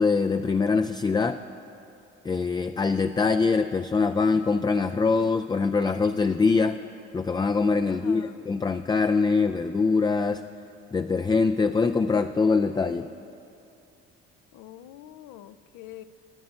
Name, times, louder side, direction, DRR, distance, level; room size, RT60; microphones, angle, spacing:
voice 1, 0.0-1.4 2.2-6.8 7.1-10.4 10.9-13.1, left 4 dB, 15° left, 8 dB, 0.3 m, -23 dB
voice 2, 7.9-8.5 14.5-16.0, left 12 dB, 75° left, 14 dB, 0.6 m, -45 dB
10.5 x 8.6 x 9.4 m, 2.8 s
supercardioid pair, 70°, 30 cm